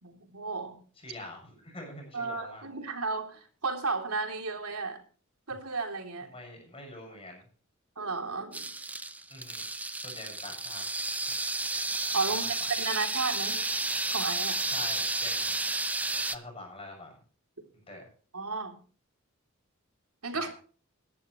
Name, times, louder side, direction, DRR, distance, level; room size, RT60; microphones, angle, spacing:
voice 1, 0.0-0.8 2.1-5.0 5.5-6.3 8.0-8.7 12.1-13.6 14.1-14.6 18.3-18.7 20.2-20.5, right 4 dB, 90° right, 4 dB, 3.3 m, -33 dB
voice 2, 1.0-2.6 6.3-7.4 9.3-9.7 10.0-10.9 12.4-12.5 14.6-15.5 16.3-17.1 17.9-18.1 20.3-20.5, left 1 dB, 25° left, 2 dB, 6.8 m, -45 dB
sound 1, 8.5-16.4, right 2 dB, 5° right, 0.5 m, -32 dB
21.0 x 11.0 x 3.2 m, 0.39 s
head